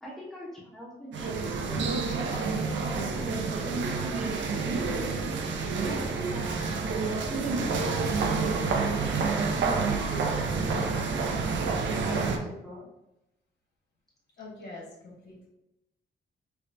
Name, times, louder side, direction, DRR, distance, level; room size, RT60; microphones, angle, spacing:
voice 1, 0.0-5.0 5.8-7.9 9.6-12.9, right 1 dB, ahead, -6 dB, 0.6 m, -43 dB
sound 1, 1.1-12.4, right 4 dB, 75° right, 0.5 m, -28 dB
sound 2, 4.4-5.6 6.5-7.2 8.0-8.9, right 2 dB, 55° right, 0.9 m, -46 dB
voice 2, 14.4-15.5, left 2 dB, 60° left, -4 dB, 1.3 m, -44 dB
4.5 x 2.2 x 2.5 m, 0.91 s
wide cardioid pair, 180°, 19 cm